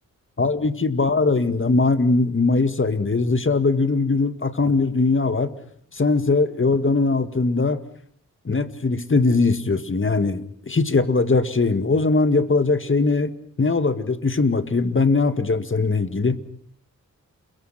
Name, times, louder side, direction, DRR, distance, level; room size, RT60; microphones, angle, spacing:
voice 1, 0.4-5.5 5.9-7.8 8.5-16.4, left 3 dB, 35° left, 11 dB, 2.1 m, -20 dB
29.0 x 23.0 x 5.9 m, 0.63 s
cardioid pair, 60°, 33 cm